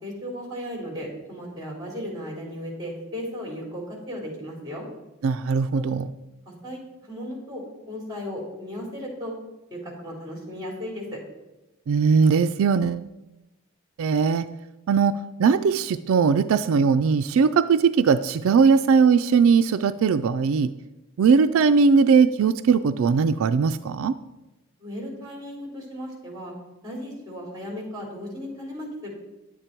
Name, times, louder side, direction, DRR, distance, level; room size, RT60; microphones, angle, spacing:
voice 1, 0.0-4.8 5.7-5.8 6.6-9.3 9.7-11.2 24.8-26.5 26.8-29.1, equal, 20° right, -1 dB, 3.2 m, -35 dB
voice 2, 5.2-6.0 11.9-13.0 14.0-14.4 14.9-15.1 15.4-20.7 21.2-24.2, right 5 dB, 75° right, 10 dB, 0.3 m, -19 dB
10.5 x 8.2 x 4.4 m, 1.0 s
head